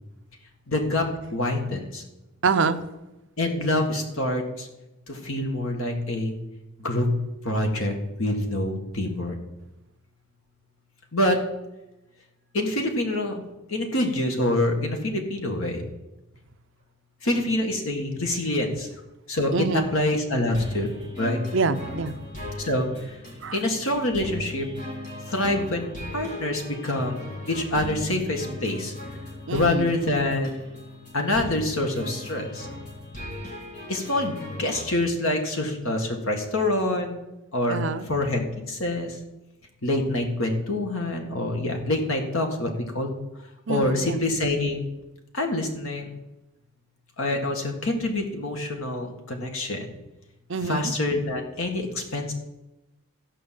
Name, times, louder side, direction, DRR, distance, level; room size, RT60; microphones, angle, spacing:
voice 1, 0.7-1.1 1.3-2.0 3.4-4.7 5.1-6.3 6.8-7.1 7.4-9.4 11.1-11.4 12.5-13.4 13.7-15.8 17.2-18.9 19.3-19.5 19.9-21.4 22.6-23.2 23.5-24.7 25.3-25.9 26.1-27.2 27.5-28.9 29.5-30.7 31.1-32.7 33.9-37.2 37.5-37.8 38.1-39.2 39.8-42.7 42.9-43.1 43.7-44.8 45.3-46.1 47.2-49.9 50.7-52.3, left 1 dB, 65° left, 1.9 m, -26 dB
voice 2, 2.4-2.8 19.5-19.9 21.5-22.2 23.4-23.6 29.5-29.9 37.7-38.2 43.7-44.2 50.5-50.9, right 4 dB, 55° right, 0.6 m, -26 dB
sound 1, 20.5-34.9, left 1 dB, 35° left, 3.0 m, -38 dB
13.0 x 5.4 x 7.6 m
head